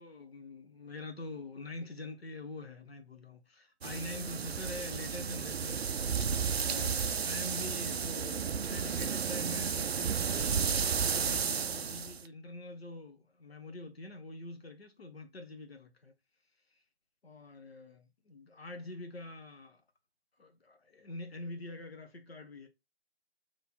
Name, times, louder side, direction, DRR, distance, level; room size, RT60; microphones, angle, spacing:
voice 1, 0.0-5.9 6.6-16.1 17.2-19.8 20.4-22.7, left 2 dB, 60° left, 1.1 m, -45 dB
sound 1, 3.8-12.2, right 6 dB, 65° right, 0.4 m, -33 dB
3.3 x 3.1 x 4.2 m
figure-of-eight pair, 150°, 34 cm